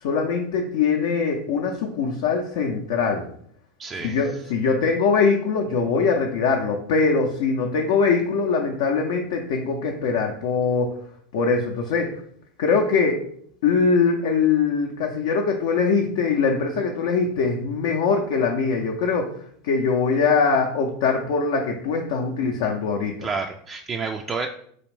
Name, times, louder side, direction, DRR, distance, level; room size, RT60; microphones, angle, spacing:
voice 1, 0.0-3.2 4.0-10.9 11.3-12.1 12.6-13.2 13.6-19.3 19.6-23.3, left 5 dB, 70° left, 1 dB, 0.5 m, -22 dB
voice 2, 3.8-4.2 23.2-24.5, right 4 dB, 30° right, 3 dB, 0.3 m, -29 dB
4.1 x 2.5 x 3.2 m, 0.64 s
hypercardioid pair, 90°, 0 cm